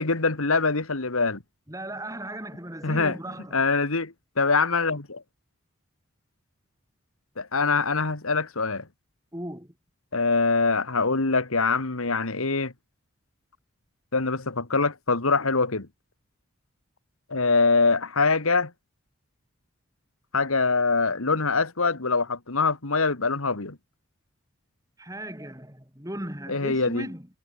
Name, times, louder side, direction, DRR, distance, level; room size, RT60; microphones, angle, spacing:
voice 1, 0.0-1.4 2.8-3.2 3.5-5.2 7.4-8.9 10.1-12.7 14.1-15.9 17.3-18.7 20.3-23.8 26.5-27.1, left 4 dB, 85° left, 2.0 m, -24 dB
voice 2, 1.7-3.6 9.3-9.7 25.0-27.3, right 1 dB, 15° right, 6.1 m, -37 dB
head